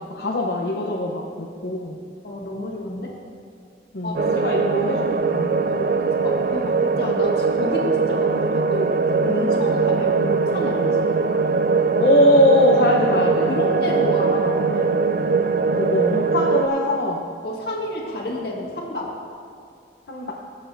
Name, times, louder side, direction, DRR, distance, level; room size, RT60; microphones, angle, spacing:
voice 1, 0.0-2.0 3.9-5.5 12.0-13.5 15.7-17.2 20.1-20.3, left 1 dB, 80° left, -2 dB, 0.8 m, -21 dB
voice 2, 2.2-3.2 4.0-4.3 5.6-11.1 13.1-13.2 13.5-15.0 17.4-19.1, left 1 dB, 65° left, -3 dB, 1.9 m, -30 dB
sound 1, 4.1-16.7, right 4 dB, 50° right, 0.3 m, -21 dB
19.5 x 7.3 x 2.6 m, 2.3 s
head